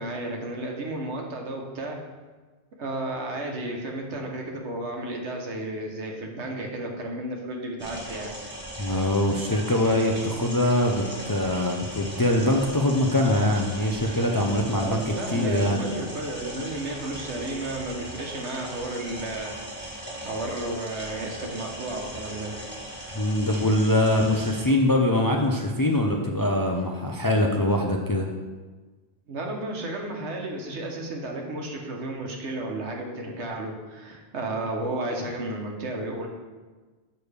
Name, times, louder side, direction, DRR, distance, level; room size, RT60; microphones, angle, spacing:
voice 1, 0.0-2.0 2.8-8.4 14.8-19.5 20.2-22.6 29.3-36.3, right 1 dB, 90° right, 1 dB, 1.3 m, -33 dB
sound 1, 7.8-24.7, right 1 dB, 10° right, 1.7 m, -38 dB
voice 2, 8.8-15.8 23.1-28.3, left 1 dB, 30° left, 1 dB, 0.4 m, -23 dB
6.9 x 6.4 x 3.3 m, 1.3 s
omnidirectional pair, 1.1 m